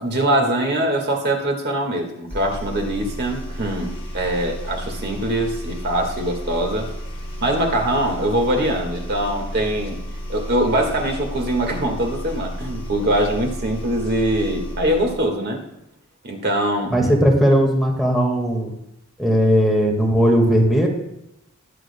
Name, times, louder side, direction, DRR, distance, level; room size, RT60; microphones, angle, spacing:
voice 1, 0.0-6.9 7.4-10.0 10.3-15.6 16.2-16.9, right 1 dB, 50° right, 2 dB, 1.7 m, -22 dB
sound 1, 2.3-15.3, equal, 25° left, 2.6 m, -32 dB
voice 2, 16.9-18.7 19.2-20.9, equal, ahead, -1 dB, 1.7 m, -17 dB
20.0 x 7.7 x 2.2 m, 0.83 s
head